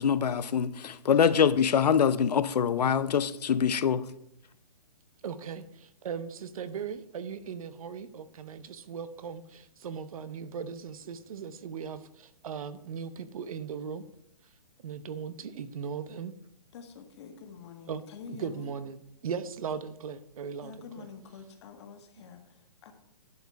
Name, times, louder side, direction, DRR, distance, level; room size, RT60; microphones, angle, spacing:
voice 1, 0.0-4.1, left 7 dB, 80° left, 0.6 m, -24 dB
voice 2, 5.2-14.0 14.8-16.3 17.9-18.0 18.3-21.1, right 6 dB, 60° right, 0.8 m, -38 dB
voice 3, 16.7-18.7 20.6-22.9, left 6 dB, 45° left, 1.7 m, -47 dB
11.0 x 7.2 x 4.7 m
hypercardioid pair, 155°, 20 cm